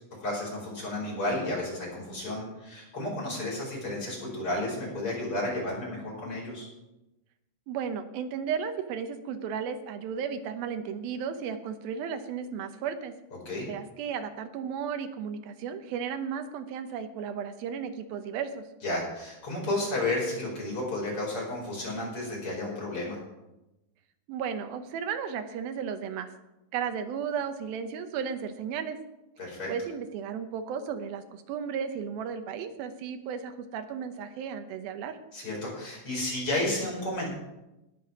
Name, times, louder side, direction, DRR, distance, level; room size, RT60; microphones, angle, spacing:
voice 1, 0.2-6.7 13.5-13.7 18.8-23.2 29.4-29.7 35.3-37.3, left 1 dB, 35° left, -3 dB, 5.7 m, -32 dB
voice 2, 7.7-13.1 13.7-18.7 24.3-26.3 26.7-29.0 29.7-35.2, right 7 dB, 90° right, 8 dB, 2.8 m, -34 dB
19.0 x 6.9 x 6.1 m, 0.96 s
omnidirectional pair, 4.2 m